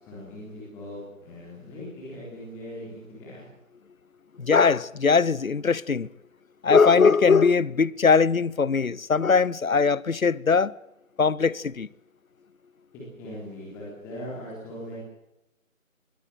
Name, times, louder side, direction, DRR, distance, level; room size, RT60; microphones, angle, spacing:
voice 1, 0.0-3.4 12.9-15.0, equal, 5° left, 3.7 m, -40 dB
voice 2, 4.4-6.1 6.6-10.7 11.2-11.9, left 5 dB, 75° left, 1.0 m, -20 dB
22.0 x 18.0 x 8.0 m
figure-of-eight pair, 165°, 42 cm